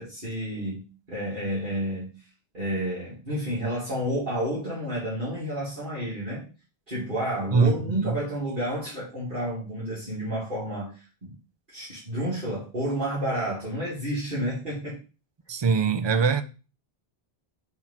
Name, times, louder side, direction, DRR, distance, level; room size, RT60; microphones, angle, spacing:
voice 1, 0.0-2.1 2.5-6.4 6.9-11.3 11.7-15.0, equal, 55° right, 2.8 m, -30 dB
voice 2, 7.5-8.1 15.5-16.4, right 5 dB, 35° right, 0.5 m, -22 dB
4.5 x 4.4 x 5.6 m
omnidirectional pair, 1.0 m